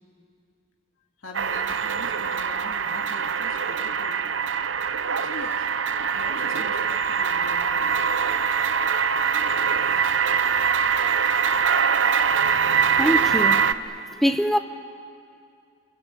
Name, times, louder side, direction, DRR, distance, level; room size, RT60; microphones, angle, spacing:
voice 1, 1.2-4.2 5.2-5.7 6.1-8.0, left 2 dB, 80° left, 2.4 m, -42 dB
sound 1, 1.3-13.7, right 6 dB, 65° right, 0.8 m, -23 dB
voice 2, 13.0-13.6 14.2-14.6, equal, ahead, 0.8 m, -22 dB
27.0 x 23.5 x 8.4 m
head